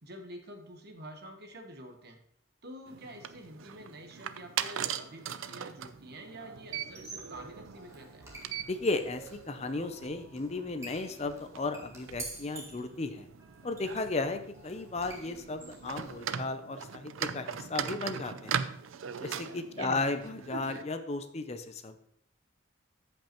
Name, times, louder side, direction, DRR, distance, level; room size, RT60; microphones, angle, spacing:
voice 1, 0.0-2.2 2.6-8.3 19.8-20.0, right 1 dB, 50° right, 5 dB, 1.2 m, -47 dB
sound 1, 2.9-20.8, right 8 dB, 75° right, 0.5 m, -40 dB
Squeak, 6.9-16.4, right 2 dB, 15° right, 1.6 m, -49 dB
voice 2, 8.7-13.3 13.6-18.6 19.2-22.0, left 3 dB, 30° left, 8 dB, 0.5 m, -35 dB
14.0 x 5.4 x 3.0 m, 0.66 s
head